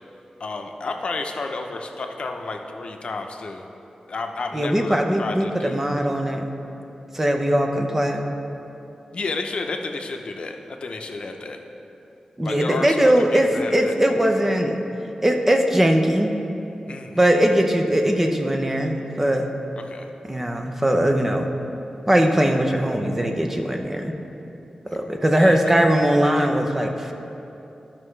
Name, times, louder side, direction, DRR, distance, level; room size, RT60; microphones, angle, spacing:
voice 1, 0.4-3.7 4.1-6.0 9.1-11.6 12.4-13.9 16.9-17.2 19.8-20.1 24.9-25.0 25.4-25.9, left 3 dB, 60° left, 4 dB, 0.7 m, -31 dB
voice 2, 4.5-6.5 7.1-8.3 12.4-14.8 15.2-16.3 17.1-19.5 20.3-21.5 22.1-24.2 24.9-27.1, right 1 dB, 15° right, 3 dB, 0.7 m, -20 dB
13.0 x 5.8 x 3.3 m, 2.9 s
wide cardioid pair, 110°, 2 cm